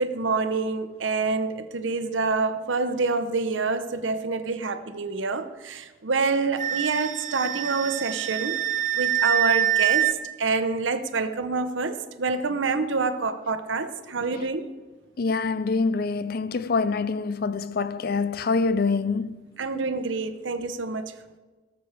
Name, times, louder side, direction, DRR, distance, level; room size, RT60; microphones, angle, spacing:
voice 1, 0.0-8.6 9.0-14.7 19.6-21.1, right 4 dB, 75° right, 0.8 m, -27 dB
Wind instrument woodwind instrument, 6.6-10.1, right 11 dB, 40° right, 0.6 m, -25 dB
voice 2, 15.2-19.4, left 4 dB, 50° left, 0.4 m, -25 dB
17.5 x 7.1 x 4.9 m
head